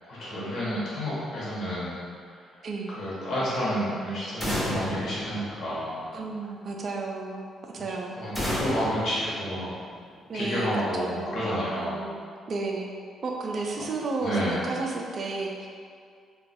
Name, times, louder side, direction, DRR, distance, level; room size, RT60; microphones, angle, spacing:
voice 1, 0.1-2.0 2.9-6.1 8.2-9.7 10.3-12.0 14.2-14.7, equal, 50° left, -9 dB, 1.0 m, -30 dB
voice 2, 2.6-2.9 6.1-8.2 10.3-10.7 11.0-11.5 11.8-12.2 12.5-12.9 13.2-15.7, right 3 dB, 35° right, 1 dB, 0.3 m, -32 dB
sound 1, 4.4-6.2 8.3-10.1, equal, 15° left, 0.7 m, -32 dB
2.6 x 2.3 x 3.9 m, 2.2 s
cardioid pair, 170°, 0 cm